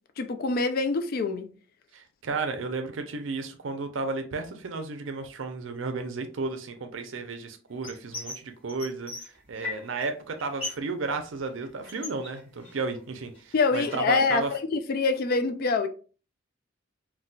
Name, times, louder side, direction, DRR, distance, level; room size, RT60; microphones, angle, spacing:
voice 1, 0.2-1.5 13.5-15.9, left 4 dB, 50° left, 0.3 m, -25 dB
voice 2, 1.9-9.1 9.5-14.5, right 3 dB, 75° right, 0.5 m, -33 dB
sound 1, 7.8-8.4 8.7-10.1 10.3-10.9 11.2-13.0 13.3-14.2, left 2 dB, 30° left, 1.6 m, -38 dB
4.0 x 2.3 x 2.2 m
head